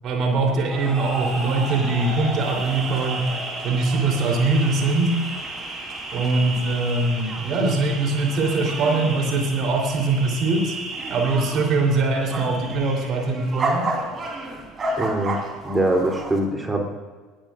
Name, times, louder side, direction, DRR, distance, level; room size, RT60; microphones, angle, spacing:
voice 1, 0.0-3.3 3.6-5.2 6.1-10.8 11.1-13.9, right 3 dB, 45° right, 1 dB, 3.5 m, -22 dB
sound 1, 0.7-16.4, right 2 dB, 30° right, 3.7 m, -31 dB
voice 2, 15.0-15.4 15.6-17.0, right 1 dB, 15° right, 2 dB, 3.2 m, -23 dB
20.0 x 17.0 x 2.5 m, 1.5 s
figure-of-eight pair, 65°, 0 cm